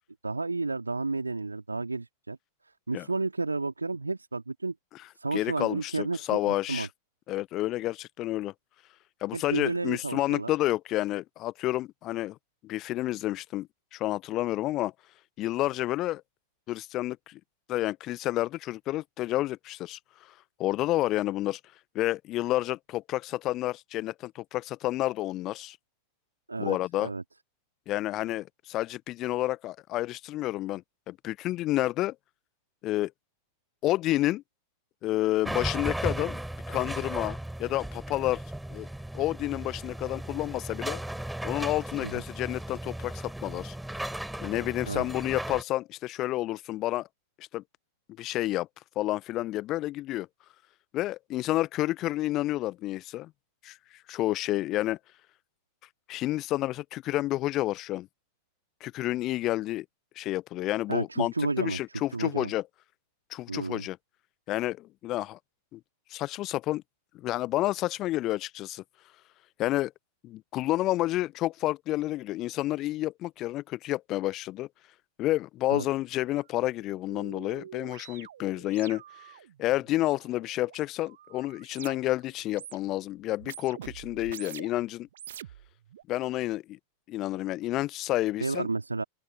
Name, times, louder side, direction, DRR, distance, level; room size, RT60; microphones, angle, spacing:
voice 1, 0.2-2.4 2.6-4.7 5.1-6.9 9.3-10.5 26.5-27.2 42.0-42.1 44.9-45.0 60.9-61.8 62.1-62.5 63.5-63.9 75.7-75.9 88.4-89.0, right 3 dB, 80° right, 2.5 m, -31 dB
voice 2, 5.3-6.9 7.3-8.5 9.2-12.4 12.6-14.9 15.4-16.2 16.7-17.4 17.7-20.0 20.6-21.6 21.9-25.8 26.6-27.1 27.9-32.2 32.8-33.1 33.8-34.4 35.0-36.4 36.7-38.4 38.7-38.9 39.1-41.0 41.4-43.8 44.4-47.1 47.4-47.6 48.2-48.7 49.0-50.3 50.9-53.3 53.6-53.8 54.1-55.0 56.1-58.1 58.8-59.9 60.2-62.6 63.3-64.0 64.5-65.4 65.7-65.8 66.1-66.8 67.1-68.8 69.6-69.9 70.2-74.7 75.2-79.0 79.6-85.1 86.1-86.8 87.1-88.7, left 16 dB, 35° left, 0.4 m, -30 dB
sound 1, 35.4-45.6, right 1 dB, 5° right, 3.2 m, -36 dB
sound 2, 76.2-76.3 76.6-82.2 82.5-83.0 83.4-84.8 85.1-86.0, right 11 dB, 60° right, 1.5 m, -47 dB
open air
figure-of-eight pair, 90°, 0 cm